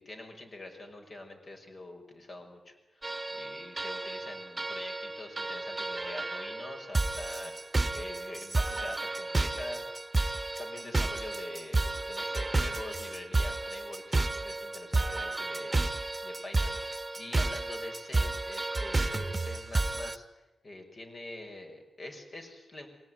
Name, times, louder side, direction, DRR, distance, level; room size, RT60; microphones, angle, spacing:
voice 1, 0.0-7.5 7.9-9.8 10.6-15.8 16.2-16.7 17.2-20.3 20.6-22.9, left 2 dB, 50° left, 3 dB, 6.1 m, -44 dB
sound 1, 3.0-20.2, right 2 dB, 25° right, 1.2 m, -32 dB
23.5 x 18.0 x 9.5 m, 1.0 s
cardioid pair, 55°, 0 cm